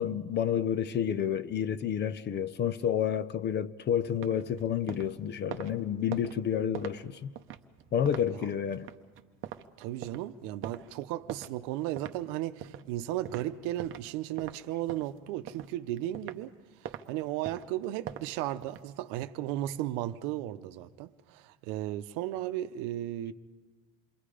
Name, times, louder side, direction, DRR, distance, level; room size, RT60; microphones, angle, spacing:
voice 1, 0.0-7.3 7.9-8.9, left 9 dB, 30° left, 0.5 m, -30 dB
sound 1, 4.0-14.1 14.4-16.5 16.8-17.0 17.4-19.3, right 10 dB, 35° right, 0.8 m, -44 dB
voice 2, 9.8-16.5 16.8-23.3, right 14 dB, 65° right, 0.8 m, -35 dB
27.5 x 22.5 x 5.0 m
cardioid pair, 140°, 34 cm